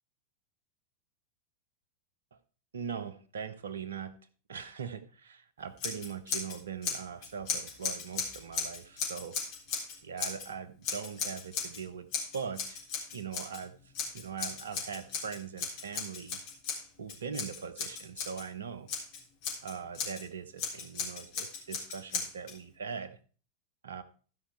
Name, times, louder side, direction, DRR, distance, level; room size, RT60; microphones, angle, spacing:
voice 1, 2.7-4.2 4.5-9.4 10.0-12.8 13.1-13.7 14.1-16.4 17.0-18.9 19.6-23.2 23.8-24.0, right 6 dB, 65° right, 12 dB, 1.0 m, -41 dB
Scissors, 5.8-6.6 6.8-10.5 10.8-11.8 12.1-13.6 13.9-18.4 18.9-20.2 20.6-22.5, left 5 dB, 45° left, 3.7 m, -36 dB
14.5 x 5.7 x 4.5 m, 0.39 s
figure-of-eight pair, 90°, 0 cm